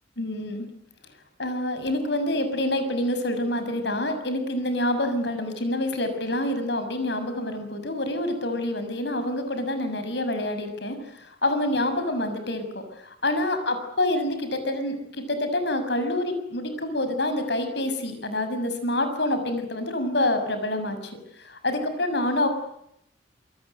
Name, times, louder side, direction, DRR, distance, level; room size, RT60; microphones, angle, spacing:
voice 1, 0.2-0.6 1.4-21.1 21.4-22.5, left 1 dB, 65° left, 8 dB, 6.7 m, -27 dB
28.0 x 24.5 x 8.0 m, 0.77 s
head